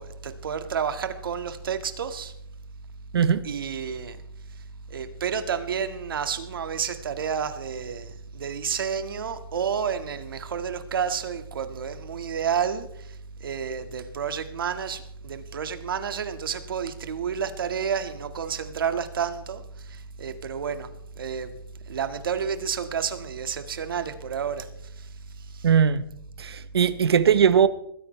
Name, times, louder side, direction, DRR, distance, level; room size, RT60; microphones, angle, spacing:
voice 1, 0.0-2.3 3.4-4.2 4.9-12.9 13.4-19.6 20.2-20.9 21.2-21.5 21.9-24.7, right 7 dB, 60° right, 1.9 m, -30 dB
voice 2, 3.1-3.5 25.6-26.1 26.4-27.7, right 7 dB, 80° right, 1.1 m, -19 dB
21.5 x 15.0 x 3.3 m
hypercardioid pair, 175°, 13 cm